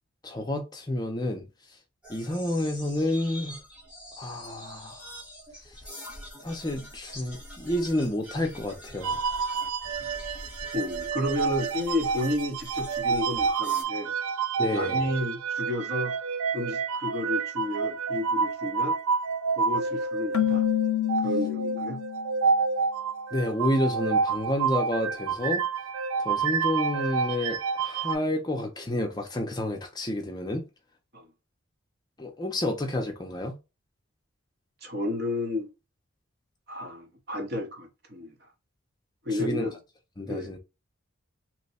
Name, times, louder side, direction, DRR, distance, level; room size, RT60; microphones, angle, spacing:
voice 1, 0.2-1.4 2.1-3.6 4.2-5.1 6.4-9.2 14.6-15.1 23.3-25.6 26.2-30.6 32.2-33.5 39.3-39.7 40.2-40.6, left 1 dB, 20° left, 0.5 m, -29 dB
sound 1, 2.0-13.8, equal, 5° right, 0.9 m, -44 dB
sound 2, 9.0-28.1, right 5 dB, 80° right, 0.4 m, -29 dB
voice 2, 10.7-14.1 14.7-16.1 16.5-19.0 19.6-20.6 21.2-22.0 31.1-31.3 34.8-35.7 36.7-38.3 39.2-39.8 40.3-40.5, left 1 dB, 50° right, 0.9 m, -31 dB
Keyboard (musical), 20.3-22.3, left 13 dB, 80° left, 0.4 m, -27 dB
3.0 x 2.2 x 4.1 m
head